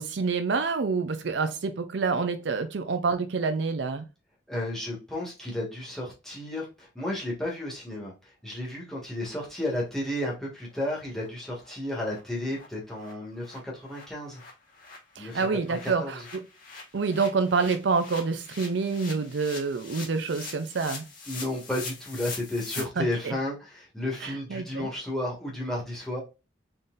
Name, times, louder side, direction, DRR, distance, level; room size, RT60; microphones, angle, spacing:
voice 1, 0.0-4.1 15.2-16.4 16.9-21.1 22.8-23.3 24.2-24.9, right 4 dB, 60° right, 0.5 m, -27 dB
voice 2, 4.5-8.1 8.4-14.4 15.2-16.2 21.3-26.2, left 1 dB, ahead, 1.6 m, -33 dB
sound 1, 9.8-9.9 10.3-10.4 10.7-10.8 11.2-11.3 11.6-11.7 12.0-12.2 12.5-12.7 12.9-22.8, left 4 dB, 45° left, 1.4 m, -43 dB
3.9 x 3.8 x 2.5 m
head